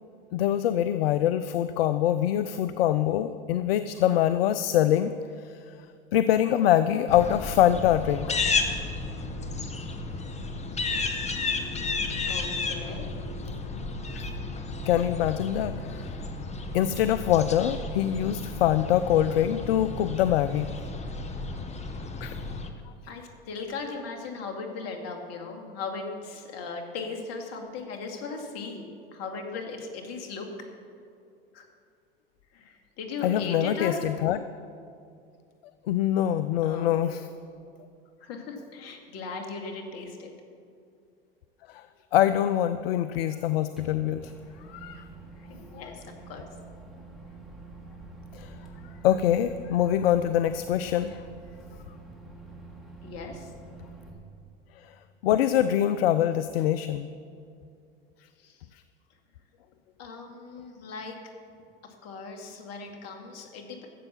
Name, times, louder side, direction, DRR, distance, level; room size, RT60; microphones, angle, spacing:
voice 1, 0.3-5.2 5.4-5.5 6.1-8.4 14.1-14.2 14.9-16.2 16.7-20.9 22.2-22.3 33.2-34.4 35.9-37.2 41.7-41.8 42.1-44.3 44.7-45.0 48.3-48.5 49.0-51.2 55.2-57.1, left 11 dB, 75° left, 12 dB, 0.5 m, -24 dB
sound 1, 7.1-22.7, left 3 dB, 20° left, 1.3 m, -33 dB
voice 2, 12.3-13.1 23.1-30.5 31.5-31.7 32.5-34.0 36.6-37.2 38.2-40.3 45.4-46.0 46.3-46.5 53.0-53.5 58.4-58.6 60.0-61.2 61.8-63.9, left 4 dB, 55° left, 3 dB, 2.3 m, -38 dB
Microwave oven, 43.8-54.1, right 2 dB, ahead, 2.9 m, -46 dB
14.0 x 7.8 x 7.2 m, 2.4 s
hypercardioid pair, 85°, 30 cm